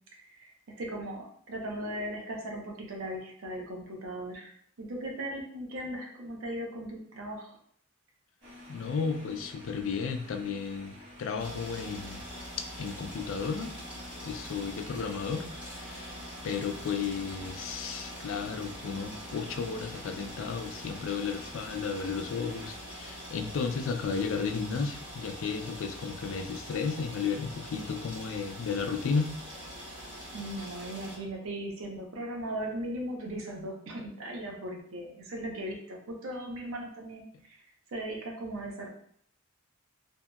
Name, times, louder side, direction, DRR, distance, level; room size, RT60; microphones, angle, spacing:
voice 1, 0.2-4.5 4.8-7.6 30.3-37.6 37.9-38.9, right 1 dB, 85° right, 0 dB, 0.7 m, -38 dB
sound 1, 8.4-22.7, left 1 dB, 65° right, 1.1 m, -50 dB
voice 2, 8.7-12.2 12.6-13.7 14.2-16.1 16.4-29.3, left 5 dB, 70° left, 5 dB, 0.3 m, -33 dB
sound 2, 11.4-31.2, equal, 5° right, 1.4 m, -44 dB
2.8 x 2.7 x 2.3 m, 0.62 s
head